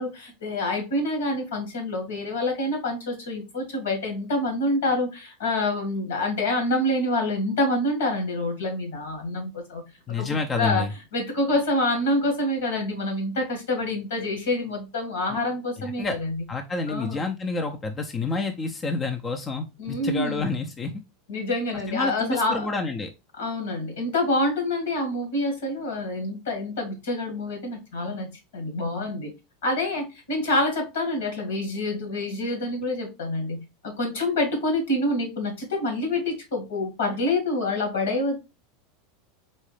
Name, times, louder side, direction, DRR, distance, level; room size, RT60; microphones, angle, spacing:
voice 1, 0.0-9.8 10.2-10.9 11.1-16.4 16.9-17.2 19.8-20.5 21.3-22.7 23.4-29.3 29.6-38.3, left 1 dB, 75° left, 3 dB, 2.1 m, -27 dB
voice 2, 10.1-10.9 16.0-16.2 16.5-20.9 21.9-23.1, left 3 dB, 25° left, 5 dB, 0.7 m, -28 dB
4.2 x 3.6 x 3.3 m, 0.26 s
hypercardioid pair, 85°, 0 cm